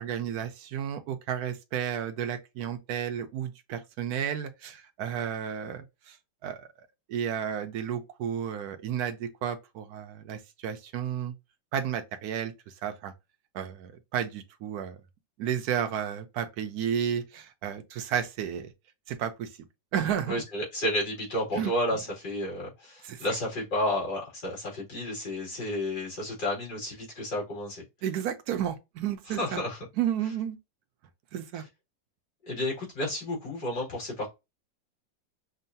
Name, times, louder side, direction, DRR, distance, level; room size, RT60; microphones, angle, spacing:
voice 1, 0.0-6.2 6.4-6.7 7.1-11.3 11.7-13.1 13.5-15.0 15.4-18.7 19.1-19.6 19.9-20.4 21.5-21.7 23.0-23.2 28.0-29.6 30.0-30.6 31.3-31.6, right 9 dB, 70° right, 1.0 m, -32 dB
voice 2, 20.3-27.8 29.3-29.8 32.4-34.3, left 1 dB, 60° left, 2.9 m, -31 dB
6.4 x 2.2 x 2.6 m
omnidirectional pair, 2.0 m